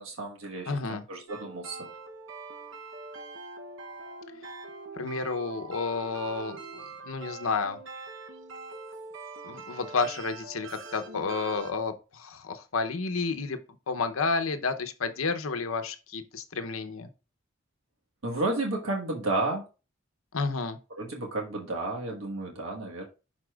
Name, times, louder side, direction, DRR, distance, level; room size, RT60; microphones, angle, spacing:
voice 1, 0.0-1.9 4.3-4.4 18.2-19.7 21.0-23.1, right 2 dB, 85° right, 0 dB, 1.4 m, -32 dB
voice 2, 0.7-1.0 4.9-7.8 9.4-13.6 13.9-17.1 20.3-20.8, left 4 dB, 90° left, 8 dB, 0.8 m, -31 dB
sound 1, 1.3-11.7, right 3 dB, 65° right, 0.8 m, -43 dB
11.0 x 4.2 x 2.4 m, 0.31 s
head